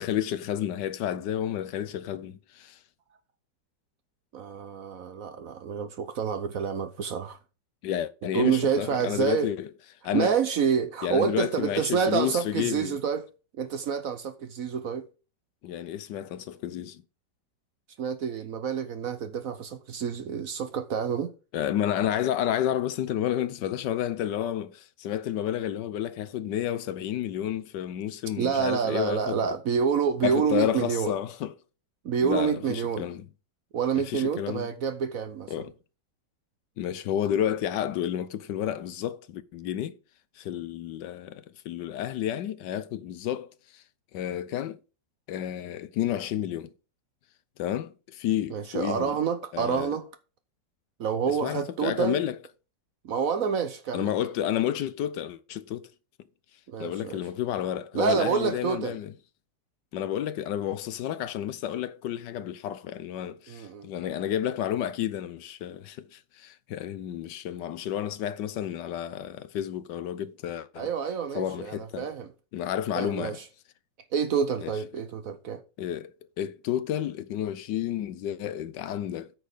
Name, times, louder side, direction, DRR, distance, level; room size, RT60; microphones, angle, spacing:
voice 1, 0.0-2.8 7.8-9.7 10.0-10.3 11.0-13.0 15.6-17.0 21.5-29.6 30.2-31.5 32.2-33.2 34.0-34.7 35.5-35.7 36.8-40.0 40.4-43.8 44.1-44.8 45.3-46.7 47.6-49.1 49.5-50.0 51.3-52.4 53.9-55.9 56.8-59.1 59.9-70.9 71.3-72.1 72.5-73.4 74.6-74.7 75.8-79.3, left 11 dB, 75° left, 1.3 m, -31 dB
voice 2, 4.3-7.4 8.3-9.5 10.1-13.3 13.6-15.1 18.0-21.3 28.4-31.1 32.0-33.1 33.7-35.7 48.5-50.1 51.0-52.2 53.0-54.1 56.7-57.2 57.9-59.0 63.5-63.9 70.8-72.3 72.9-73.4 74.1-75.6, right 7 dB, 60° right, 1.0 m, -28 dB
9.1 x 6.4 x 5.0 m
omnidirectional pair, 2.0 m